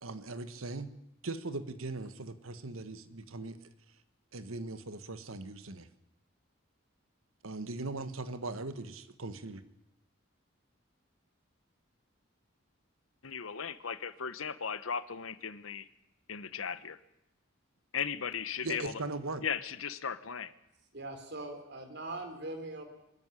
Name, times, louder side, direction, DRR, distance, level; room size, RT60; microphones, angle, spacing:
voice 1, 0.0-0.9 1.2-3.6 4.3-5.9 7.4-9.6 18.6-19.4, right 2 dB, 90° right, 12 dB, 1.6 m, -39 dB
voice 2, 13.2-15.9 16.3-17.0 17.9-18.9 19.4-20.5, left 6 dB, 80° left, 14 dB, 1.1 m, -37 dB
voice 3, 20.9-22.8, right 2 dB, 55° right, 6 dB, 3.7 m, -41 dB
23.5 x 14.0 x 9.9 m, 0.88 s
head